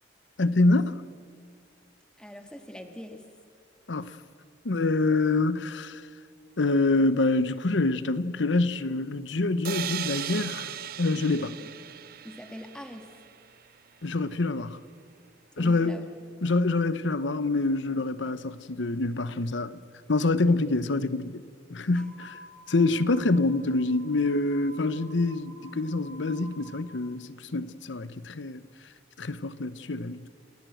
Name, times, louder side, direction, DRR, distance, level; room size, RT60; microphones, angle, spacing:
voice 1, 0.4-1.0 3.9-4.1 4.6-6.1 6.6-11.5 14.0-14.8 15.6-16.0 16.4-19.8 20.1-21.4 21.7-22.4 22.7-28.7 29.2-30.3, left 2 dB, 85° left, 0.9 m, -26 dB
voice 2, 2.2-3.2 11.6-11.7 12.2-13.2 15.6-16.0, equal, 5° left, 1.6 m, -42 dB
sound 1, 9.6-13.5, right 10 dB, 55° right, 0.6 m, -37 dB
sound 2, 21.9-26.8, right 1 dB, 80° right, 5.9 m, -51 dB
28.5 x 14.0 x 7.8 m
head